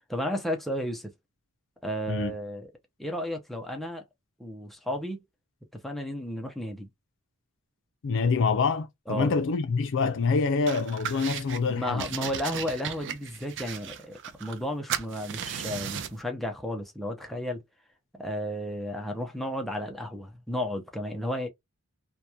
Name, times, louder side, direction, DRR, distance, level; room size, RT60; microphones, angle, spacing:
voice 1, 0.1-1.1 1.8-2.7 3.0-4.0 4.4-5.2 5.8-6.9 9.1-9.3 11.7-17.6 18.2-21.5, equal, ahead, 0.5 m, -33 dB
voice 2, 8.0-12.1, left 4 dB, 60° left, 0.5 m, -26 dB
sound 1, 10.7-11.6 12.0-14.6 14.9-16.2, right 9 dB, 55° right, 0.4 m, -36 dB
2.8 x 2.2 x 2.2 m
head